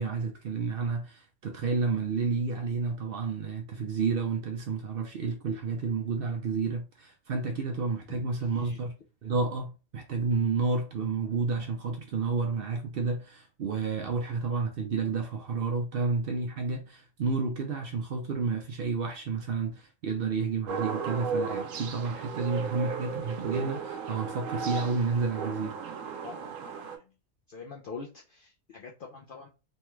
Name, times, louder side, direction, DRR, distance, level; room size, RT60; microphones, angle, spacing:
voice 1, 0.0-8.9 9.2-25.8, right 4 dB, 60° right, 0.6 m, -30 dB
voice 2, 8.1-8.8 26.2-27.1 27.5-29.5, left 4 dB, 65° left, 0.5 m, -45 dB
sound 1, 20.7-27.0, right 5 dB, 85° right, 1.0 m, -35 dB
3.2 x 2.2 x 3.0 m
omnidirectional pair, 1.3 m